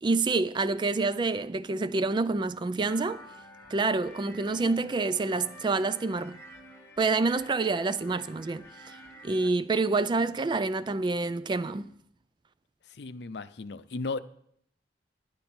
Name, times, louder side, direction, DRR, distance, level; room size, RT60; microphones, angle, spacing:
voice 1, 0.0-3.2 3.7-6.4 7.0-9.0 9.2-11.9, right 3 dB, 25° right, 0.3 m, -27 dB
sound 1, 2.8-9.5, equal, 15° left, 1.2 m, -50 dB
voice 2, 13.0-14.2, left 3 dB, 65° left, 0.5 m, -35 dB
11.0 x 10.5 x 4.3 m
head